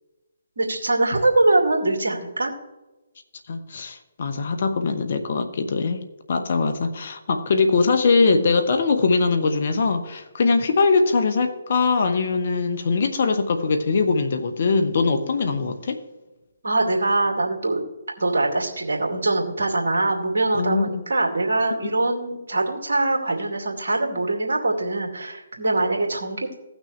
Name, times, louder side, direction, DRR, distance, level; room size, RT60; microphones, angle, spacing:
voice 1, 0.6-2.5 7.8-7.9 16.6-17.8 18.2-26.5, right 2 dB, 65° right, 2.3 m, -23 dB
voice 2, 3.5-16.0 20.5-21.0 21.8-21.9, left 4 dB, 55° left, 1.1 m, -22 dB
16.5 x 6.2 x 3.2 m
figure-of-eight pair, 140°, 0 cm